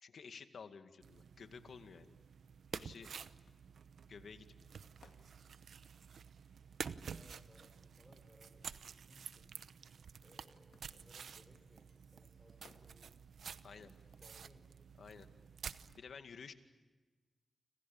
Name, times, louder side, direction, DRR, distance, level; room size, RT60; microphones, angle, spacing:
voice 1, 0.0-2.2 2.7-3.1 4.1-4.7 13.6-13.9 15.0-15.3 16.0-16.5, left 5 dB, 75° left, 8 dB, 2.2 m, -53 dB
sound 1, 1.0-16.0, right 6 dB, 80° right, 0.9 m, -51 dB
sound 2, 3.5-7.1 8.6-8.7 10.7-14.6, left 6 dB, 90° left, 2.5 m, -71 dB
voice 2, 7.0-9.5 10.2-13.3 13.6-15.0, equal, 5° left, 4 dB, 5.3 m, -66 dB
30.0 x 26.5 x 7.3 m, 1.2 s
cardioid pair, 60°, 0 cm